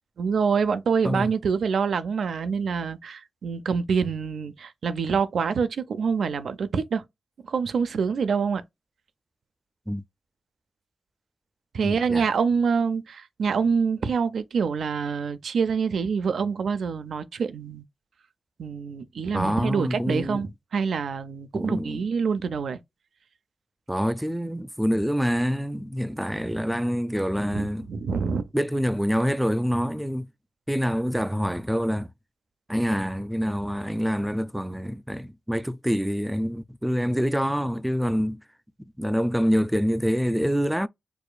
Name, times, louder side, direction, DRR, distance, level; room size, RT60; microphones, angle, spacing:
voice 1, 0.2-7.0 7.4-8.6 11.7-17.8 18.6-22.8 27.5-28.5, right 5 dB, 80° right, 0.4 m, -26 dB
voice 2, 11.8-12.3 19.3-20.5 21.5-22.0 23.9-27.9 28.5-30.3 30.7-32.1 32.7-38.4 39.0-40.9, equal, 5° right, 0.3 m, -26 dB
4.7 x 2.4 x 2.2 m
cardioid pair, 55°, 0 cm